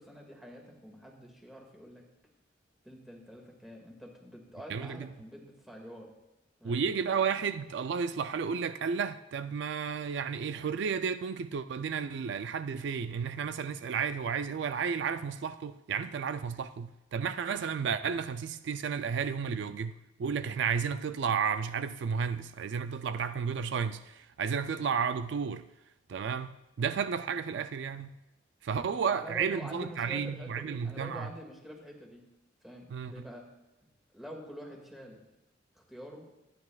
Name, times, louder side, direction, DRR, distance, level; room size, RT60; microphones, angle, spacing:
voice 1, 0.0-2.1 2.8-6.1 6.6-6.8 28.8-32.3 32.6-33.5 34.1-35.2 35.8-36.3, equal, ahead, 1.9 m, -46 dB
voice 2, 4.7-5.1 6.6-25.6 26.1-28.1 28.6-31.3 32.9-33.3, right 6 dB, 70° right, 0.3 m, -32 dB
24.5 x 9.5 x 2.3 m
head